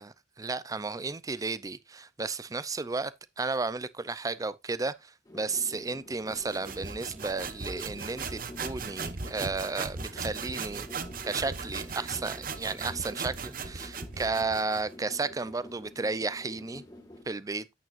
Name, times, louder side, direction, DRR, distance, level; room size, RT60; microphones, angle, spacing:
voice 1, 0.0-10.9 11.2-16.8 17.3-17.7, right 3 dB, 20° right, 0.5 m, -33 dB
sound 1, 5.2-17.2, left 1 dB, 20° left, 2.0 m, -49 dB
sound 2, 6.3-14.9, right 5 dB, 55° right, 0.9 m, -38 dB
9.1 x 8.7 x 2.5 m
head